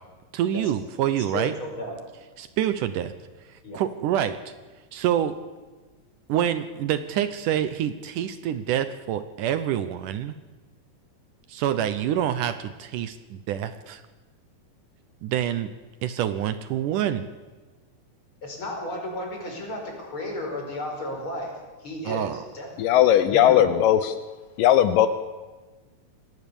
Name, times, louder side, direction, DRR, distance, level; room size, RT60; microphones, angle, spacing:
voice 1, 0.3-1.5 2.4-3.1 3.5-4.5 4.9-5.3 6.3-10.3 11.5-14.0 15.2-15.7 16.0-17.2 22.1-22.4, right 10 dB, 75° right, 12 dB, 2.2 m, -26 dB
voice 2, 1.3-1.9 3.6-3.8 18.4-21.5 21.8-22.7 23.3-23.7, left 1 dB, 35° left, 1 dB, 5.8 m, -33 dB
voice 3, 22.8-24.1 24.6-25.1, left 11 dB, 80° left, 12 dB, 2.4 m, -18 dB
26.0 x 18.5 x 7.0 m, 1.3 s
omnidirectional pair, 4.0 m